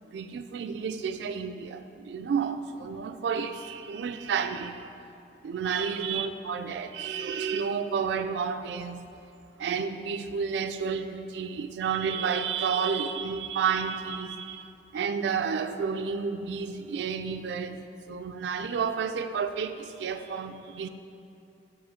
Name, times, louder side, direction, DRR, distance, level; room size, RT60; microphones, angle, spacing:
voice 1, 0.1-4.8 5.4-9.0 9.6-14.7 14.9-20.9, right 6 dB, 70° right, 9 dB, 0.3 m, -31 dB
6.1 x 4.9 x 3.7 m, 2.7 s
head